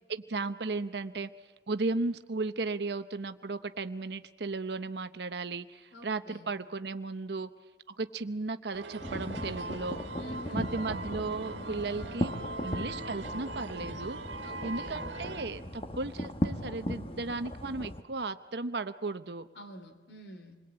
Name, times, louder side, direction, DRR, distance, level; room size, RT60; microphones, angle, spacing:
voice 1, 0.1-1.3 1.7-7.5 7.9-10.0 10.5-12.3 12.6-14.2 14.6-19.5, right 3 dB, 70° right, 10 dB, 0.8 m, -35 dB
voice 2, 5.9-6.5 10.2-10.7 14.4-15.0 19.5-20.6, equal, 75° left, 7 dB, 2.9 m, -47 dB
sound 1, 8.7-15.4, right 2 dB, 85° right, 1.8 m, -41 dB
sound 2, 9.0-18.0, left 1 dB, 30° left, 1.2 m, -37 dB
27.5 x 21.5 x 8.8 m, 1.2 s
head